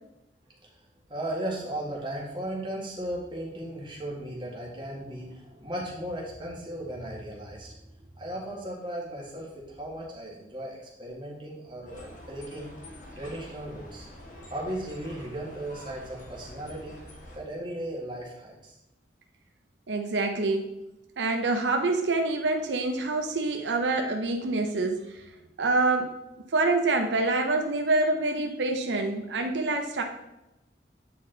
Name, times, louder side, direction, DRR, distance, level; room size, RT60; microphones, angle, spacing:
voice 1, 1.1-12.7 13.2-14.1 14.5-17.0 17.3-18.8, right 1 dB, 25° right, -3 dB, 1.7 m, -36 dB
sound 1, 11.9-17.4, left 1 dB, 45° left, 1.4 m, -46 dB
voice 2, 19.9-20.7 21.2-25.2 25.6-26.1 26.5-30.0, right 2 dB, 85° right, 4 dB, 0.6 m, -26 dB
8.5 x 4.1 x 3.9 m, 0.93 s
head